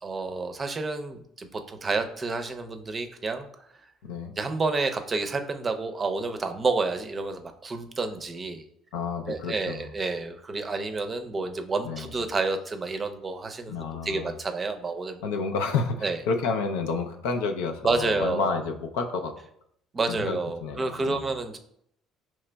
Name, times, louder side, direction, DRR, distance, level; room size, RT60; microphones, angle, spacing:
voice 1, 0.0-3.5 4.4-8.6 9.3-15.2 16.0-16.2 17.8-18.6 19.9-21.6, right 3 dB, 30° right, 7 dB, 0.5 m, -29 dB
voice 2, 4.0-4.3 8.9-9.9 11.8-12.1 13.7-14.3 15.2-19.3 20.1-21.3, left 4 dB, 85° left, 4 dB, 0.4 m, -30 dB
4.8 x 3.0 x 2.2 m, 0.72 s
supercardioid pair, 75°, 0 cm